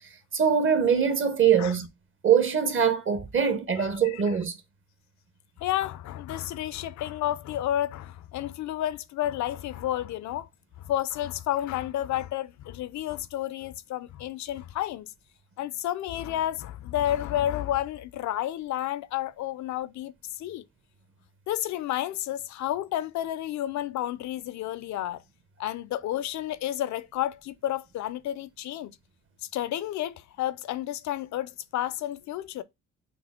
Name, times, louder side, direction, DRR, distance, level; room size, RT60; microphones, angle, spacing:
voice 1, 0.3-1.9 2.2-4.6, right 7 dB, 40° right, 0.9 m, -23 dB
voice 2, 3.8-4.2 5.6-10.5 10.8-15.1 15.6-20.6 21.5-25.2 25.6-28.9 29.5-32.6, left 12 dB, 70° left, 0.4 m, -31 dB
6.0 x 2.0 x 3.6 m
cardioid pair, 90°, 30 cm